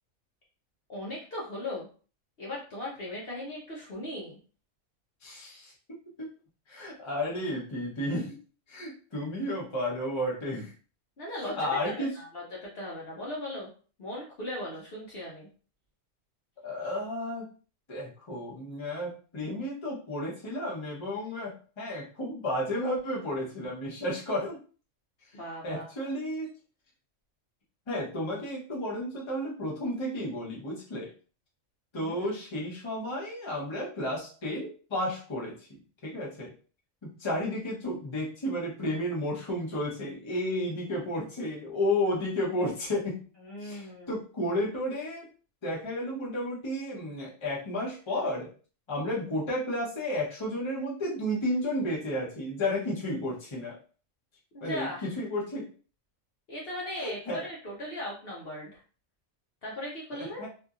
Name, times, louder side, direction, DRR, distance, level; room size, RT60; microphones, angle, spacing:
voice 1, 0.9-1.9 2.4-4.4 11.2-13.7 14.0-15.5 25.3-26.1 32.0-32.3 43.4-44.2 54.5-55.1 56.5-58.8 59.6-60.5, left 1 dB, 50° left, -5 dB, 0.9 m, -38 dB
voice 2, 5.2-6.3 6.7-8.3 8.7-10.7 11.6-12.1 16.6-17.5 17.9-24.6 25.6-26.5 27.9-31.1 31.9-35.5 36.0-36.5 37.0-43.2 43.6-45.3 45.6-48.5 48.9-53.8 54.6-55.6 57.0-57.4 60.1-60.5, left 1 dB, 25° left, -4 dB, 0.8 m, -32 dB
2.7 x 2.6 x 2.4 m, 0.39 s
omnidirectional pair, 1.4 m